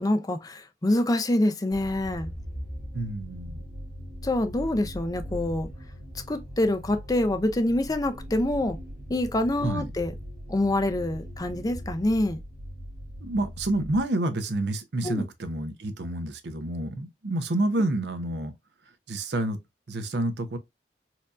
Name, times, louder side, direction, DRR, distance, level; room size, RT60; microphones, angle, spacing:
voice 1, 0.0-2.3 4.2-5.7 6.3-8.8 9.1-10.1 10.5-12.4 15.0-15.3, left 1 dB, 20° left, 0.5 m, -26 dB
sound 1, 1.7-14.0, equal, 50° right, 1.3 m, -40 dB
voice 2, 2.9-3.6 9.6-9.9 13.2-18.5 19.1-19.6 19.9-20.6, right 1 dB, 65° right, 0.7 m, -28 dB
4.4 x 2.6 x 2.3 m
head